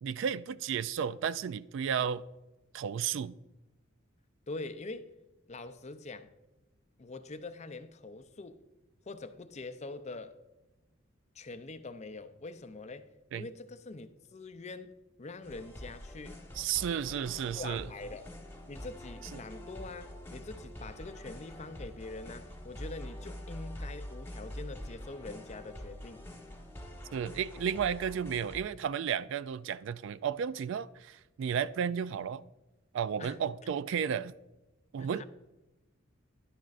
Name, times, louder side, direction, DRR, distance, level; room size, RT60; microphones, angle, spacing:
voice 1, 0.0-2.2 2.7-3.4 13.3-13.5 16.5-17.9 19.3-19.4 27.1-32.4 32.9-34.3 34.9-35.2, right 8 dB, 65° right, 0.3 m, -33 dB
voice 2, 4.5-5.1 5.5-6.3 7.0-8.6 9.1-10.4 11.3-16.4 17.5-18.2 18.7-26.3 33.2-33.4 35.0-35.2, left 3 dB, 35° left, 0.5 m, -44 dB
sound 1, 15.4-28.6, equal, 10° left, 1.3 m, -45 dB
11.0 x 10.5 x 2.5 m
head